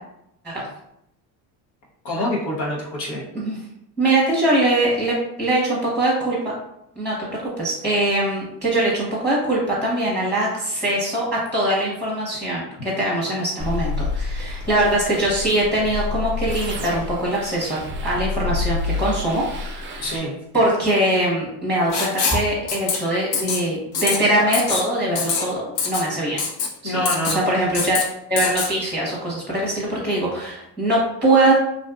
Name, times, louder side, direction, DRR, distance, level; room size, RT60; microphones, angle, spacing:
voice 1, 2.0-3.2 20.0-20.3 26.8-27.6, equal, 85° left, -3 dB, 0.9 m, -26 dB
voice 2, 4.0-6.4 7.0-20.2 20.5-26.4 26.8-28.0 28.3-31.5, right 1 dB, 5° left, -5 dB, 0.8 m, -22 dB
sound 1, 13.6-20.2, left 3 dB, 30° right, 0.3 m, -28 dB
Writing, 21.9-22.4 22.7-23.0 23.3-23.6 23.9-24.2 24.5-24.8 25.2-25.4 25.8-26.0 26.4-26.7 27.1-27.4 27.7-28.0 28.4-28.7, left 5 dB, 55° left, 0.7 m, -23 dB
2.5 x 2.4 x 2.3 m, 0.80 s
supercardioid pair, 85°, 48 cm